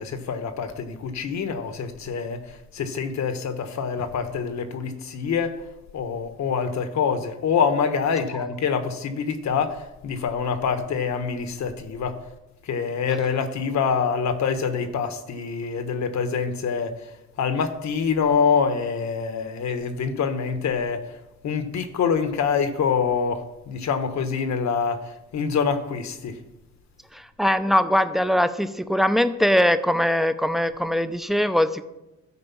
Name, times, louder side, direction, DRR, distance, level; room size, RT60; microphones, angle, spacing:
voice 1, 0.0-2.4 2.7-5.6 5.9-12.2 12.6-16.9 17.4-21.0 21.4-26.4, left 6 dB, 65° left, 1.2 m, -25 dB
voice 2, 27.1-31.8, equal, ahead, 0.6 m, -21 dB
12.5 x 5.0 x 7.0 m
cardioid pair, 90°, 30 cm